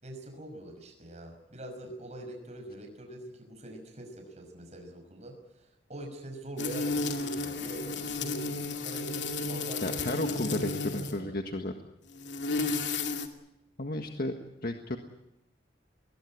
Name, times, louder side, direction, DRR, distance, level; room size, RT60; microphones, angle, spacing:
voice 1, 0.0-11.3, right 1 dB, 40° right, 3 dB, 5.8 m, -44 dB
sound 1, 6.6-11.2 12.1-13.3, left 3 dB, 75° left, 2.4 m, -33 dB
voice 2, 9.8-11.7 13.8-14.3 14.6-15.0, left 1 dB, 55° left, 4 dB, 1.6 m, -33 dB
21.0 x 20.5 x 9.9 m, 0.87 s
head